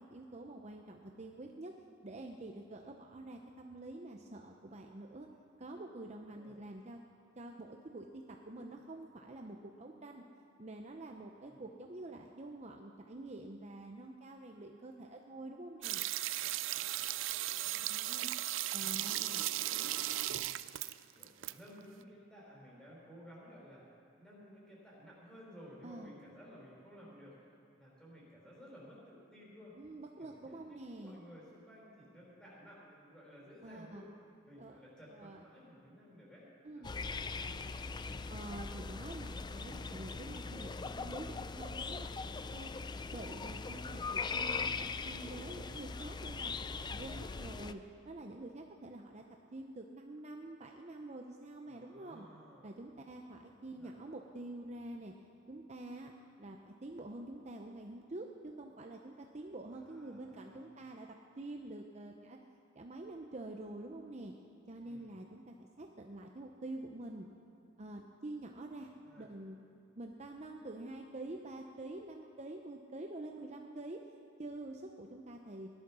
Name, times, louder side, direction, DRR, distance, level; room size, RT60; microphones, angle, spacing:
voice 1, 0.0-1.7 2.0-5.3 5.6-7.0 7.4-10.2 10.6-16.0 17.9-18.3 18.7-19.5 19.8-20.0 25.8-26.1 29.8-31.2 33.6-34.0 34.6-34.8 35.1-35.4 36.6-36.9 38.3-42.8 43.1-49.2 49.5-52.3 52.6-55.1 55.5-56.1 56.4-62.4 62.7-64.3 64.7-67.3 67.8-68.9 69.2-69.6 70.0-74.0 74.4-75.7, right 2 dB, 35° right, 2 dB, 0.7 m, -47 dB
voice 2, 6.3-6.6 11.4-11.8 16.8-17.9 18.6-19.2 19.5-20.4 21.1-23.8 24.2-27.3 27.8-29.8 30.2-34.1 34.4-37.5 51.7-52.7 53.3-53.9 59.7-60.7 64.8-65.2 68.8-69.3, equal, 5° left, -6 dB, 4.7 m, -56 dB
sound 1, 15.8-21.5 21.8-21.9, right 14 dB, 80° right, 0.4 m, -36 dB
sound 2, 36.8-47.7, left 4 dB, 20° left, 0.4 m, -40 dB
17.0 x 11.5 x 6.2 m, 2.6 s
head